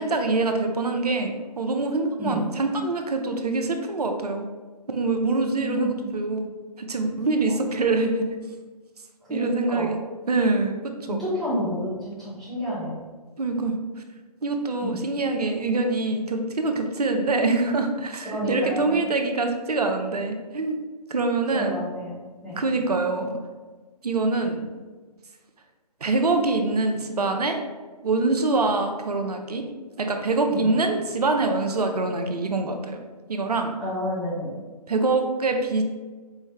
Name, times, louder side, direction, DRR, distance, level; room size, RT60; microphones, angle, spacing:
voice 1, 0.0-4.5 4.9-6.5 6.8-8.3 9.3-10.0 10.3-11.2 13.4-13.8 14.4-20.8 21.1-21.9 22.6-23.3 24.0-24.6 26.0-27.6 28.0-29.6 30.0-33.0 33.3-33.7 34.9-35.8, right 3 dB, 70° right, 5 dB, 0.5 m, -24 dB
voice 2, 5.6-6.0 9.3-9.9 11.1-12.9 14.8-15.0 18.2-18.9 21.5-22.1 22.4-22.6 30.5-30.7 33.8-34.5, equal, ahead, -13 dB, 0.5 m, -30 dB
4.3 x 2.0 x 3.5 m, 1.3 s
figure-of-eight pair, 140°, 21 cm